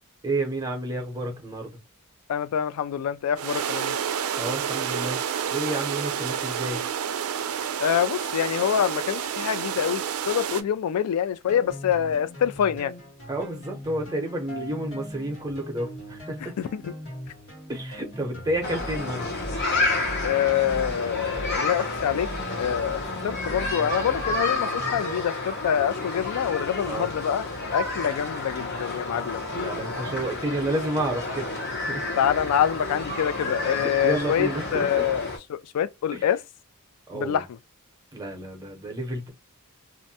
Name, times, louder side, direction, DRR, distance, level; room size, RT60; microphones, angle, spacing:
voice 1, 0.2-1.8 4.4-5.2 5.5-6.8 13.3-16.5 17.7-19.3 26.9-27.1 29.6-32.0 33.6-35.0 36.1-36.3 37.1-37.4 38.1-39.3, right 1 dB, 15° right, 0.6 m, -30 dB
voice 2, 2.3-4.0 7.8-12.9 16.6-16.9 20.2-22.3 22.6-27.5 27.7-29.5 32.2-36.4 37.1-37.5, left 9 dB, 85° left, 0.3 m, -26 dB
sound 1, 3.4-10.6, right 8 dB, 75° right, 0.4 m, -29 dB
sound 2, 11.5-25.2, equal, 65° left, 1.3 m, -39 dB
sound 3, 18.6-35.4, left 2 dB, 50° left, 0.8 m, -30 dB
2.5 x 2.1 x 2.7 m
head